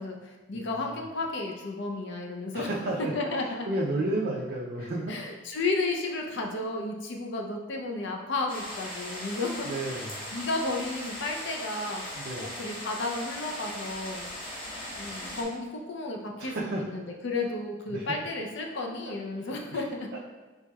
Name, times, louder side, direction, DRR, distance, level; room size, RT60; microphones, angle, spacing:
voice 1, 0.0-2.7 3.0-3.7 5.1-10.0 10.3-14.3 15.0-20.1, left 2 dB, 60° left, 1 dB, 0.6 m, -33 dB
voice 2, 2.5-3.1 3.4-5.2 9.6-10.3 12.1-12.5 16.4-16.8 17.9-18.2 19.5-19.8, right 2 dB, 55° right, -4 dB, 0.5 m, -32 dB
sound 1, 8.5-15.4, left 1 dB, 25° left, 0.9 m, -39 dB
4.5 x 4.0 x 2.3 m, 1.2 s
head